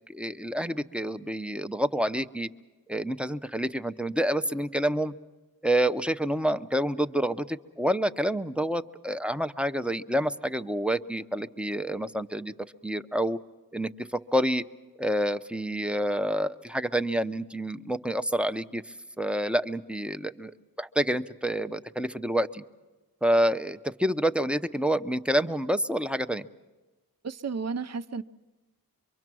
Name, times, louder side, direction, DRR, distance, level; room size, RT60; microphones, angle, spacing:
voice 1, 0.1-2.5 2.9-5.1 5.6-12.5 12.8-13.4 13.7-14.6 15.0-20.5 20.8-22.6 23.2-26.5, equal, 5° right, 0.6 m, -28 dB
voice 2, 27.2-28.2, right 5 dB, 45° right, 0.7 m, -32 dB
25.0 x 23.5 x 6.2 m
cardioid pair, 60°, 37 cm